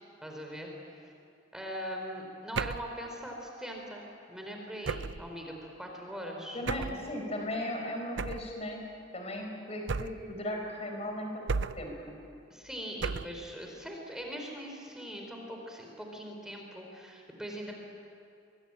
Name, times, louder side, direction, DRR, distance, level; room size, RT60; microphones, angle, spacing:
voice 1, 0.2-1.0 1.5-6.9 12.5-17.8, equal, 5° right, 1 dB, 3.7 m, -41 dB
sound 1, 2.5-3.0 4.8-5.3 6.7-7.0 8.2-8.5 9.9-10.3 11.5-12.0 13.0-13.4, right 4 dB, 75° right, 0.6 m, -34 dB
voice 2, 6.5-8.8 9.1-11.5 11.7-11.9, left 1 dB, 35° left, 2 dB, 4.8 m, -36 dB
25.0 x 22.5 x 8.9 m, 2.6 s
head